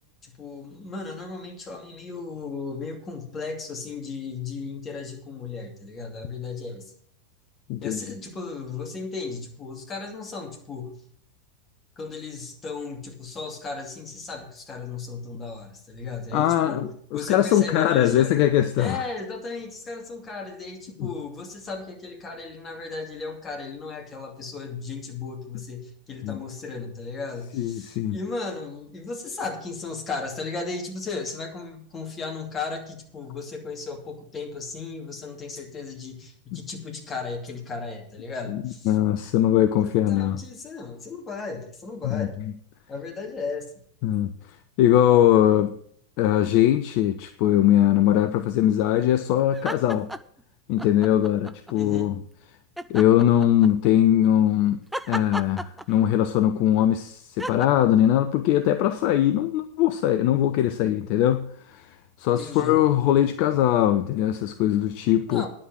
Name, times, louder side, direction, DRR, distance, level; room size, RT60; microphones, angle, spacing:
voice 1, 0.2-6.9 7.8-11.0 12.0-18.3 18.8-38.9 39.8-42.4 42.9-43.7 51.7-52.1 62.3-62.8 65.3-65.5, left 4 dB, 20° left, 2.6 m, -35 dB
voice 2, 7.7-8.0 16.3-19.0 21.0-21.1 26.2-26.4 27.5-28.2 38.5-38.6 38.9-40.4 42.0-42.5 44.0-44.3 44.8-45.7 46.2-50.1 50.7-52.1 52.9-54.8 55.1-61.9 62.2-65.4, left 11 dB, 45° left, 0.6 m, -21 dB
sound 1, 49.5-50.4 50.8-51.8 52.8-53.9 54.9-56.3 57.4-57.7, right 1 dB, 5° right, 0.5 m, -34 dB
10.0 x 7.6 x 7.4 m
figure-of-eight pair, 90°, 0 cm